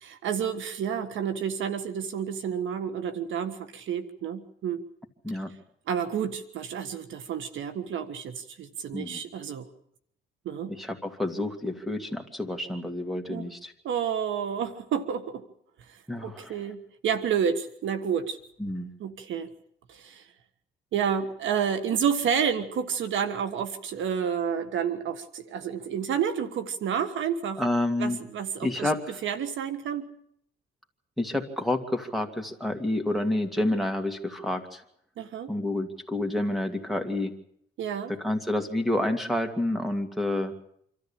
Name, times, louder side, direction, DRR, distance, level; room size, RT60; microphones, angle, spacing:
voice 1, 0.0-4.8 5.9-9.7 10.4-10.8 13.3-13.5 13.8-15.4 15.9-18.4 19.0-19.5 19.9-20.3 20.9-27.6 28.0-28.9 29.2-30.0 35.2-35.5 37.8-38.1, right 7 dB, 75° right, 10 dB, 1.5 m, -30 dB
voice 2, 10.6-13.7 16.1-16.6 18.6-18.9 27.6-28.2 28.6-29.2 31.2-34.8 35.5-37.3 38.1-40.5, left 1 dB, ahead, 5 dB, 2.6 m, -29 dB
26.0 x 13.5 x 8.8 m, 0.71 s
cardioid pair, 90°, 20 cm